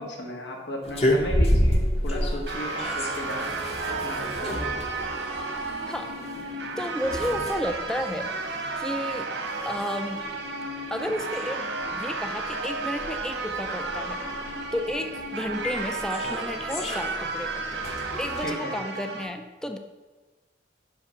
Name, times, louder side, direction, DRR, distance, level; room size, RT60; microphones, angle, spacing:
voice 1, 0.0-3.6 3.8-4.9 18.4-18.7, left 1 dB, 85° left, 0 dB, 1.7 m, -35 dB
sound 1, 0.8-18.5, equal, 35° left, 0.9 m, -31 dB
sound 2, 2.5-19.2, right 3 dB, 80° right, 1.3 m, -33 dB
sound 3, 3.3-7.7, right 3 dB, 60° right, 0.8 m, -43 dB
voice 2, 6.8-9.3 9.7-10.2 10.9-14.2 14.7-17.9 18.2-19.8, equal, 5° left, 6 dB, 0.4 m, -32 dB
5.7 x 5.6 x 6.8 m, 1.3 s
head